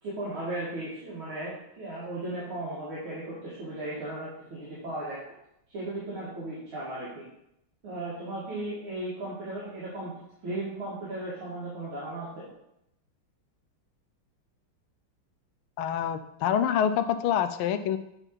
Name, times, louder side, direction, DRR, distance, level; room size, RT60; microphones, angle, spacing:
voice 1, 0.0-5.2 5.7-7.2 7.8-10.1 10.4-12.5, right 1 dB, 75° right, -8 dB, 2.7 m, -36 dB
voice 2, 15.8-18.0, left 9 dB, 90° left, 10 dB, 1.5 m, -26 dB
8.8 x 4.0 x 4.5 m, 0.80 s
omnidirectional pair, 2.3 m